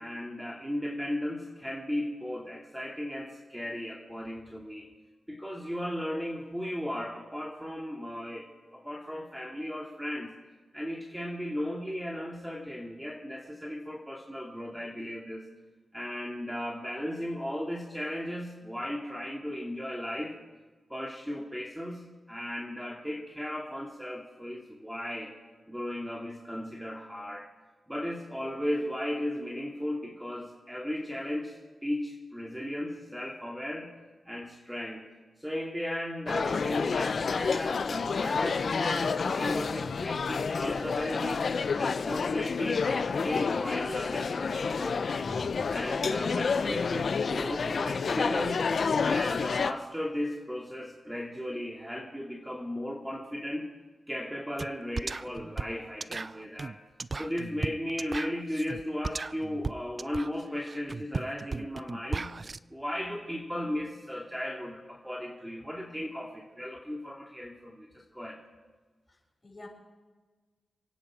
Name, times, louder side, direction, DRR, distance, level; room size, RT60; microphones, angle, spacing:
voice 1, 0.0-4.9 5.3-10.3 10.7-15.5 15.9-20.4 20.9-25.3 25.7-27.5 27.9-33.9 34.3-35.0 35.4-41.5 41.7-45.3 45.7-48.6 49.0-53.7 54.1-56.8 57.1-62.3 62.7-68.4, left 1 dB, 5° right, -1 dB, 2.5 m, -36 dB
sound 1, 36.3-49.7, left 5 dB, 65° left, 0.7 m, -29 dB
voice 2, 45.2-45.7 63.5-63.6 69.4-69.7, left 2 dB, 35° left, -1 dB, 7.0 m, -45 dB
sound 2, 54.6-54.7 55.0-62.6, right 3 dB, 45° right, 0.4 m, -36 dB
28.0 x 9.9 x 5.0 m, 1.3 s
supercardioid pair, 45°, 0 cm